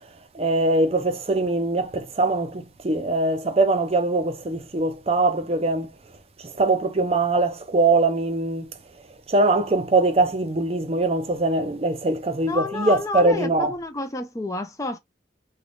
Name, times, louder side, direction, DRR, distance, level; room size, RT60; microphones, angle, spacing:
voice 1, 0.3-5.9 6.4-8.7 9.3-13.7, right 2 dB, 35° right, 0.5 m, -22 dB
voice 2, 12.5-15.0, left 2 dB, 20° left, 0.5 m, -30 dB
3.4 x 2.3 x 3.8 m
head